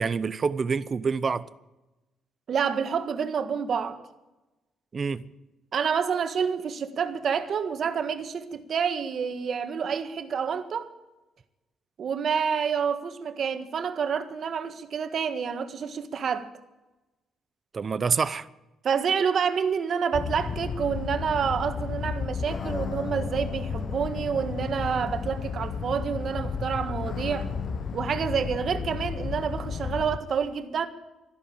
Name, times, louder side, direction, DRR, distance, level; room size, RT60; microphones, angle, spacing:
voice 1, 0.0-1.5 4.9-5.2 17.7-18.5, right 5 dB, 40° right, 0.8 m, -27 dB
voice 2, 2.5-4.0 5.7-10.9 12.0-16.5 18.8-27.5 27.9-30.9, right 6 dB, 55° right, 1.6 m, -28 dB
sound 1, 20.1-30.2, left 6 dB, 55° left, 1.1 m, -33 dB
13.5 x 12.5 x 8.7 m
cardioid pair, 90°, 0 cm